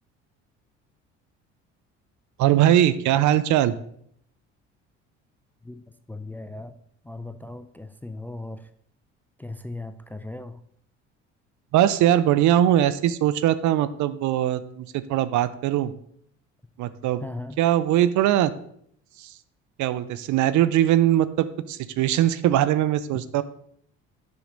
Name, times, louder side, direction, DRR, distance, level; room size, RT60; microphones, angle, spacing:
voice 1, 2.4-3.7 11.7-15.9 16.8-17.2 17.6-18.5 19.2-19.3 19.8-23.4, right 12 dB, 55° right, 15 dB, 0.6 m, -21 dB
voice 2, 6.1-6.7 7.0-8.7 9.4-10.6 17.2-17.6 23.1-23.2, left 2 dB, 5° left, 11 dB, 0.4 m, -37 dB
7.1 x 5.9 x 3.8 m, 0.68 s
hypercardioid pair, 60°, 35 cm